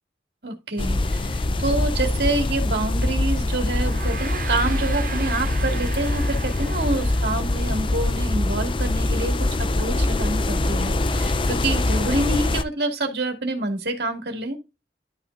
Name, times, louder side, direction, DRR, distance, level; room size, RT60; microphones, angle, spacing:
voice 1, 0.4-14.6, right 2 dB, 65° right, 2.3 m, -27 dB
sound 1, 0.8-12.6, left 2 dB, 30° left, 0.5 m, -23 dB
Gong, 3.6-8.3, right 6 dB, 50° right, 0.7 m, -37 dB
12.0 x 5.9 x 2.6 m
head